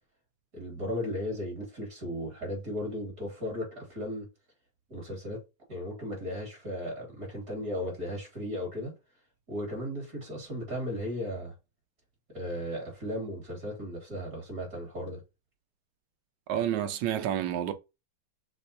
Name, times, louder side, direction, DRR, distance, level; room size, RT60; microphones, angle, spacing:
voice 1, 0.5-4.3 4.9-5.4 5.7-8.9 9.5-11.5 12.3-15.2, left 1 dB, 40° right, 2.5 m, -36 dB
voice 2, 16.5-17.7, right 10 dB, 70° right, 1.2 m, -29 dB
6.6 x 2.5 x 2.7 m
omnidirectional pair, 2.3 m